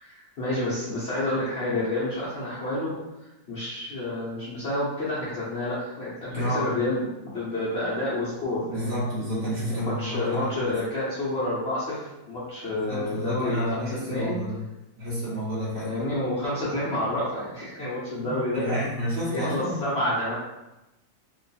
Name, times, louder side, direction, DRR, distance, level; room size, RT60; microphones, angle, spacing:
voice 1, 0.0-2.9 3.5-8.9 9.7-14.4 15.8-18.8 19.3-20.3, left 1 dB, 55° left, -9 dB, 0.8 m, -29 dB
voice 2, 6.3-6.7 8.5-10.8 12.7-14.6 15.0-15.9 18.2-19.8, equal, 45° right, -10 dB, 0.9 m, -30 dB
3.0 x 2.3 x 4.0 m, 0.97 s
omnidirectional pair, 1.9 m